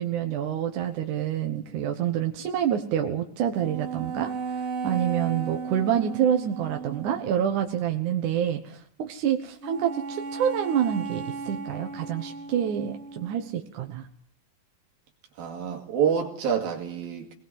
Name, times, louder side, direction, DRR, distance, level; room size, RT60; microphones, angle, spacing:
voice 1, 0.0-4.3 4.8-14.0, right 9 dB, 65° right, 5 dB, 2.5 m, -27 dB
sound 1, 3.6-7.2 9.6-13.5, right 5 dB, 45° right, 2.5 m, -35 dB
voice 2, 15.4-17.3, right 7 dB, 85° right, 2 dB, 4.1 m, -27 dB
23.0 x 20.0 x 7.7 m, 0.64 s
omnidirectional pair, 4.1 m